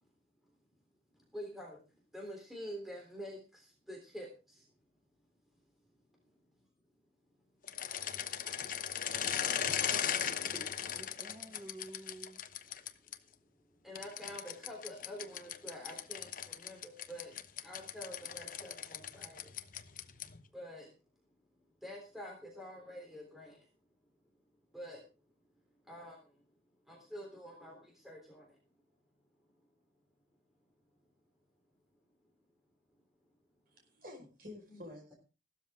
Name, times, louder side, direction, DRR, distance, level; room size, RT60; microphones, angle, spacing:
voice 1, 1.1-1.8 2.1-4.7 10.5-10.7 13.8-17.3 17.6-19.5 20.5-20.9 21.8-23.7 24.7-25.0 25.9-26.4 26.9-28.6 34.7-34.8, equal, ahead, -1 dB, 3.6 m, -47 dB
sound 1, 7.6-13.2 14.0-20.4, left 9 dB, 45° left, 0.9 m, -38 dB
voice 2, 9.4-12.4, right 1 dB, 25° right, 6 dB, 1.6 m, -52 dB
voice 3, 33.7-35.1, left 1 dB, 50° right, 1 dB, 5.2 m, -50 dB
16.0 x 13.0 x 3.7 m, 0.32 s
head